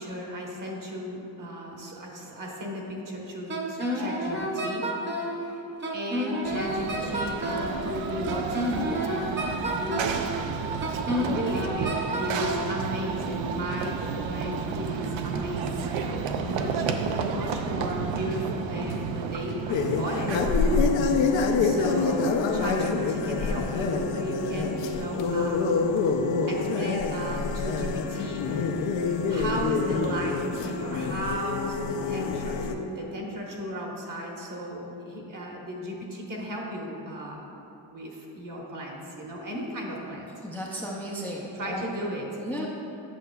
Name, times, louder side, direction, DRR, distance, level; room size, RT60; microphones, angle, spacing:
voice 1, 0.0-4.8 5.2-5.6 5.9-9.3 9.6-10.3 11.0-14.0 14.2-16.9 17.2-25.8 26.5-28.8 29.3-37.4 37.9-40.3 41.5-42.7, equal, 40° right, -2 dB, 1.3 m, -35 dB
Wind instrument woodwind instrument, 3.5-5.4 5.8-7.7 8.3-10.2 10.8-12.7, equal, 25° right, 0.9 m, -30 dB
Run / Train, 6.4-20.9, right 5 dB, 75° right, 0.6 m, -31 dB
Carnatic varnam by Badrinarayanan in Saveri raaga, 19.7-32.7, left 4 dB, 65° left, 0.6 m, -26 dB
voice 2, 40.4-41.8 42.4-42.7, equal, 5° left, -3 dB, 0.4 m, -34 dB
8.4 x 6.5 x 2.3 m, 2.9 s
cardioid pair, 100°, 47 cm